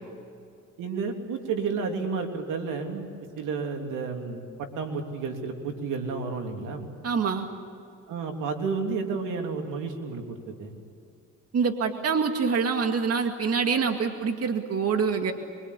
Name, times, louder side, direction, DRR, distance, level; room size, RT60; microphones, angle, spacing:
voice 1, 0.8-3.1 3.4-6.9 8.1-10.7, right 5 dB, 90° right, 3 dB, 3.4 m, -31 dB
voice 2, 7.0-7.5 11.5-15.3, right 5 dB, 55° right, 5 dB, 2.2 m, -25 dB
25.0 x 24.5 x 8.4 m, 2.6 s
cardioid pair, 90°, 30 cm